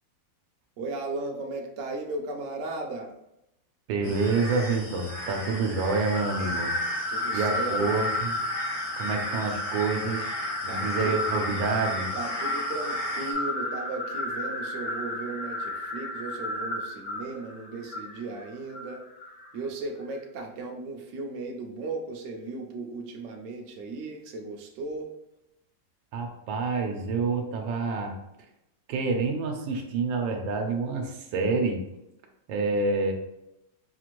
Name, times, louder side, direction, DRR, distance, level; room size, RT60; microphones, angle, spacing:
voice 1, 0.8-3.1 7.1-7.9 10.7-11.3 12.1-19.0 19.5-25.1, right 3 dB, 65° right, 1 dB, 0.8 m, -36 dB
voice 2, 3.9-6.7 7.3-8.4 9.0-10.3 10.6-12.1 26.1-28.2 28.9-31.8 32.5-33.1, right 4 dB, 85° right, 3 dB, 1.4 m, -27 dB
sound 1, 4.0-13.3, equal, 85° left, 1.9 m, -36 dB
sound 2, 6.1-19.5, left 1 dB, 70° left, 1.5 m, -32 dB
5.2 x 2.5 x 3.0 m, 0.85 s
omnidirectional pair, 2.0 m